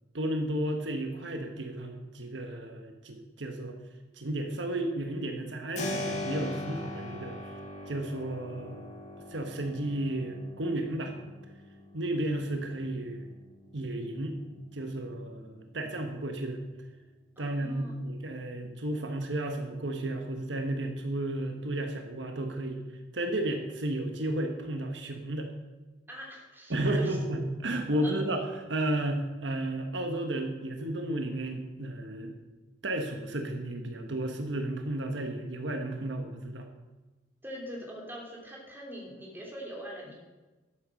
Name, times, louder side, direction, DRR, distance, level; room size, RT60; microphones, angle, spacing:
voice 1, 0.1-3.8 4.2-7.5 7.9-8.8 9.3-11.1 11.9-13.3 13.7-14.4 14.7-16.6 17.4-22.8 23.1-25.5 26.7-32.3 32.8-36.7, right 1 dB, 75° right, 4 dB, 1.4 m, -33 dB
Keyboard (musical), 5.8-16.4, left 1 dB, 40° left, 2.3 m, -42 dB
voice 2, 17.4-17.9 26.1-27.2 28.0-28.2 37.4-40.2, equal, 10° right, -2 dB, 3.2 m, -42 dB
12.5 x 8.0 x 6.4 m, 1.2 s
head